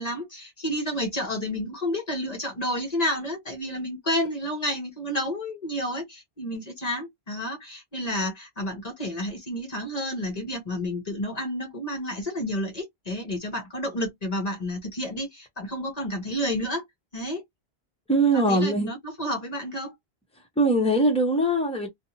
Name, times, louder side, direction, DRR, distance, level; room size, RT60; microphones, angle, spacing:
voice 1, 0.0-16.8 17.1-17.4 18.3-19.9, equal, 40° left, 1.0 m, -30 dB
voice 2, 18.1-18.9 20.6-21.9, right 1 dB, 5° left, 1.1 m, -21 dB
2.5 x 2.5 x 2.8 m
omnidirectional pair, 1.1 m